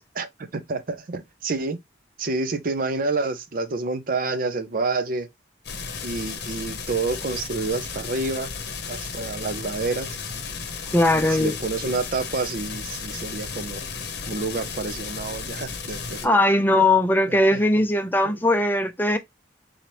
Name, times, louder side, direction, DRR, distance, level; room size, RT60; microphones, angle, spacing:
voice 1, 0.2-1.8 2.2-5.3 6.0-8.5 8.9-10.2 11.1-13.8 14.3-16.4 17.5-17.6 18.2-18.4, right 3 dB, 50° right, 0.6 m, -28 dB
sound 1, 5.6-16.3, left 5 dB, 65° left, 0.8 m, -34 dB
voice 2, 10.9-11.5 16.2-19.2, left 1 dB, 10° left, 0.5 m, -19 dB
3.9 x 3.0 x 3.0 m
head